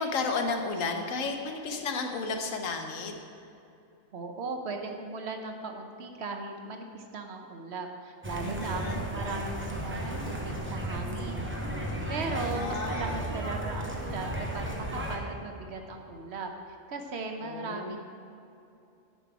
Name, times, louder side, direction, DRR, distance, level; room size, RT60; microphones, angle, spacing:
voice 1, 0.0-3.1 8.4-9.0 12.3-13.3 17.4-18.0, left 4 dB, 85° left, 4 dB, 1.2 m, -33 dB
voice 2, 4.1-11.5 12.1-16.5 16.9-18.0, right 3 dB, 60° right, 4 dB, 1.0 m, -37 dB
sound 1, 8.2-15.2, right 1 dB, 10° right, 0.7 m, -34 dB
10.0 x 5.5 x 4.7 m, 2.7 s
omnidirectional pair, 1.3 m